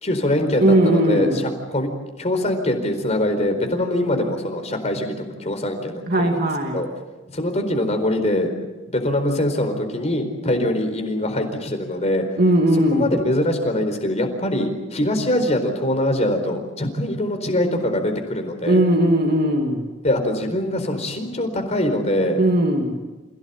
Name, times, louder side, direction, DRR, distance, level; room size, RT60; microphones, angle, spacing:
voice 1, 0.0-1.4 1.7-1.9 2.2-5.1 5.4-6.5 6.7-6.9 7.3-8.5 8.9-12.3 12.9-18.8 20.0-22.4, left 1 dB, 35° left, 5 dB, 4.4 m, -23 dB
voice 2, 0.6-1.4 6.1-6.8 12.4-13.1 18.7-19.9 22.4-23.0, right 1 dB, 50° right, 2 dB, 2.6 m, -18 dB
28.0 x 17.0 x 8.5 m, 1.2 s
head